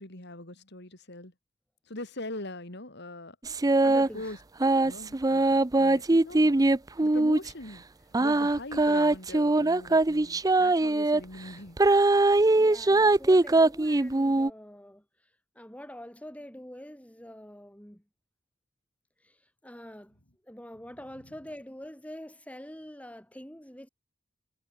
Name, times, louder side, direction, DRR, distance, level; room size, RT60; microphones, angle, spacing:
voice 1, 0.0-1.3 1.9-3.4 4.1-4.4 4.6-6.7 7.0-7.8 8.2-11.8, left 2 dB, 55° left, 4.5 m, -42 dB
sound 1, 3.5-4.1 4.6-7.5 8.1-11.2 11.8-14.5, right 2 dB, 20° right, 0.5 m, -22 dB
voice 2, 3.8-4.3 12.6-15.0 15.6-18.0 19.2-19.4 19.6-23.9, equal, 5° left, 7.1 m, -45 dB
head